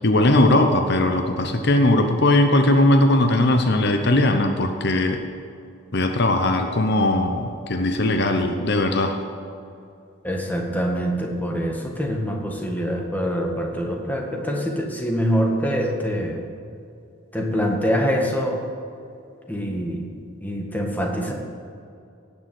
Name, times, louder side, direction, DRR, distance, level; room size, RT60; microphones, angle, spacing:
voice 1, 0.0-5.2 5.9-9.2, left 1 dB, 55° left, 5 dB, 0.9 m, -19 dB
voice 2, 10.2-16.4 17.3-18.6 19.5-20.1 20.4-21.3, equal, 10° left, 0 dB, 1.7 m, -24 dB
18.0 x 7.2 x 7.8 m, 2.6 s
head